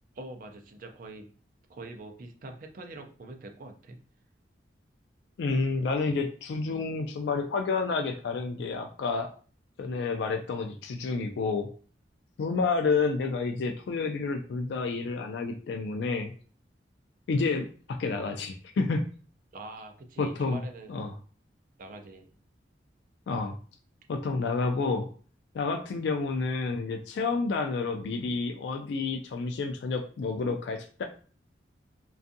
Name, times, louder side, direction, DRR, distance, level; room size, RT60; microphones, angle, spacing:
voice 1, 0.1-1.3 1.7-4.0 19.5-20.9 21.8-22.3, right 2 dB, 50° right, 5 dB, 0.4 m, -44 dB
voice 2, 5.4-9.3 9.8-11.7 12.4-16.3 17.3-19.0 20.2-20.6 20.9-21.1 23.3-23.6 24.1-25.1 25.5-31.0, left 4 dB, 70° left, 4 dB, 0.3 m, -29 dB
2.5 x 2.3 x 2.6 m, 0.40 s
head